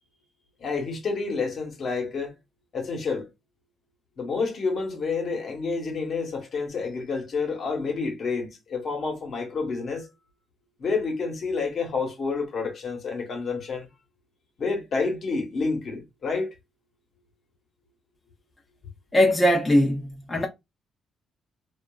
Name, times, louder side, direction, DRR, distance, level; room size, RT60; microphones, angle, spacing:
voice 1, 0.6-2.3 2.7-3.3 4.2-10.1 10.8-13.9 14.6-16.5, left 4 dB, 55° left, 1.1 m, -29 dB
voice 2, 19.1-20.5, left 1 dB, 15° left, 0.7 m, -20 dB
2.8 x 2.4 x 2.3 m
cardioid pair, 90°, 0 cm